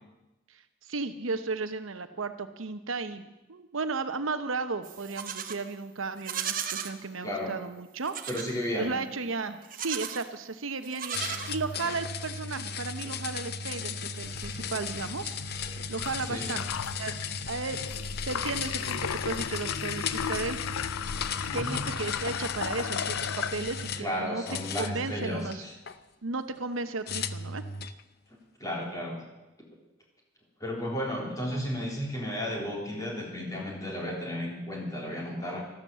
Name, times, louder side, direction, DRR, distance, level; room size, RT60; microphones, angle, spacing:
voice 1, 0.5-8.1 8.8-15.3 15.9-16.6 17.0-17.9 18.3-20.6 21.5-25.7 26.2-27.6, right 3 dB, 80° right, 9 dB, 1.0 m, -34 dB
Livestock farm animals working animals, 4.8-5.6 6.2-6.9 8.0-8.5 9.6-10.3 10.8-11.9, right 8 dB, 40° right, 1.0 m, -35 dB
voice 2, 8.3-8.9 16.3-16.5 21.5-21.8 24.0-25.7 28.6-29.2 30.6-35.6, equal, 15° left, -2 dB, 3.5 m, -33 dB
sound 1, 11.1-24.1 24.5-26.0 27.1-28.0, left 5 dB, 50° left, 0.6 m, -36 dB
sound 2, 14.2-24.0, left 7 dB, 90° left, 0.5 m, -36 dB
13.0 x 12.5 x 7.4 m, 1.0 s
head